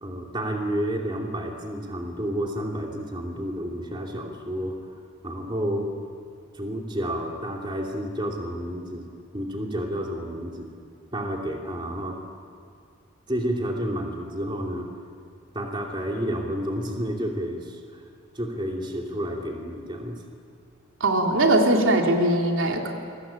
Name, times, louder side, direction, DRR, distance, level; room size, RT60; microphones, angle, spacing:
voice 1, 0.0-4.8 5.2-5.9 6.5-10.7 11.1-12.2 13.3-14.9 15.5-18.0 18.3-20.2, equal, 25° right, 0 dB, 2.8 m, -30 dB
voice 2, 21.0-23.0, right 1 dB, 80° right, 1 dB, 3.2 m, -21 dB
28.5 x 23.0 x 8.9 m, 2.3 s
head